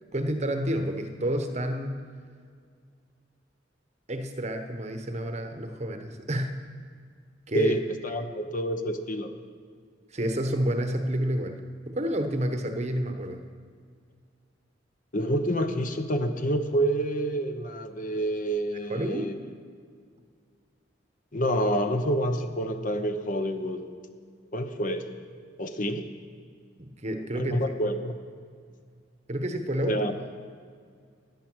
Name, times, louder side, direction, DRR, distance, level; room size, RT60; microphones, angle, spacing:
voice 1, 0.1-2.0 4.1-6.5 7.5-7.7 10.1-11.6 11.9-13.4 18.9-19.3 26.8-27.6 29.3-30.1, right 1 dB, 35° right, 6 dB, 1.0 m, -29 dB
voice 2, 7.5-9.4 15.1-19.3 21.3-23.9 24.5-25.1 25.6-26.1 27.3-28.1 29.9-30.1, right 1 dB, 45° left, 7 dB, 0.9 m, -28 dB
15.0 x 10.0 x 6.2 m, 2.1 s
head